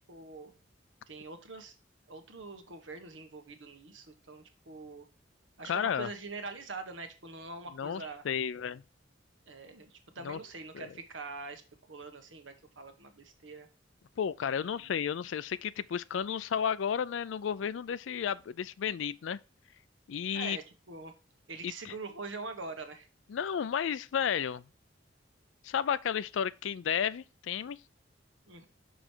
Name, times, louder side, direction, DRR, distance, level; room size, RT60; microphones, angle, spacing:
voice 1, 0.1-0.5 1.1-1.7 2.1-5.0 5.6-8.2 9.5-11.6 11.9-13.7 14.4-15.0 20.3-21.1 21.5-23.1 28.5-28.7, right 3 dB, 85° right, 1.3 m, -44 dB
voice 2, 5.7-6.1 7.8-8.8 10.2-10.4 10.7-10.9 14.2-19.4 20.1-20.6 21.6-21.9 23.3-24.6 25.6-27.8, left 8 dB, 85° left, 0.4 m, -32 dB
6.2 x 5.1 x 4.4 m
head